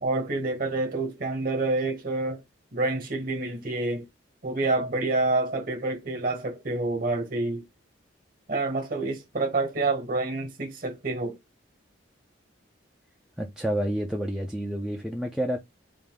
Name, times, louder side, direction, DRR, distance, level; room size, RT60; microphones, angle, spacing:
voice 1, 0.0-2.4 2.7-4.1 4.4-7.6 8.5-11.4, right 2 dB, 45° right, 1.2 m, -28 dB
voice 2, 13.4-15.6, equal, 5° right, 0.4 m, -29 dB
3.4 x 2.7 x 3.8 m
head